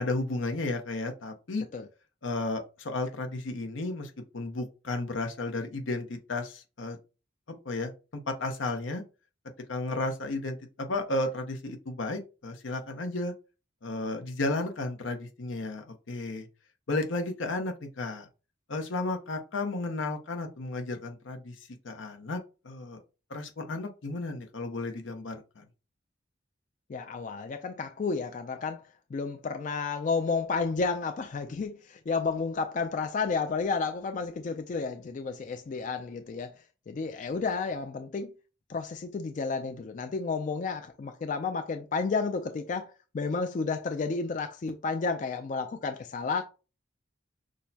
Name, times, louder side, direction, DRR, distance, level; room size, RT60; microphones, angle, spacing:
voice 1, 0.0-1.7 2.2-7.0 7.5-9.0 9.7-13.3 13.8-16.5 16.9-18.3 18.7-21.6 21.8-23.0 23.3-25.6, left 2 dB, 85° left, 0.8 m, -33 dB
voice 2, 26.9-28.8 29.1-36.5 36.9-38.3 38.7-46.4, left 4 dB, 40° left, 0.3 m, -31 dB
6.2 x 2.1 x 2.7 m
head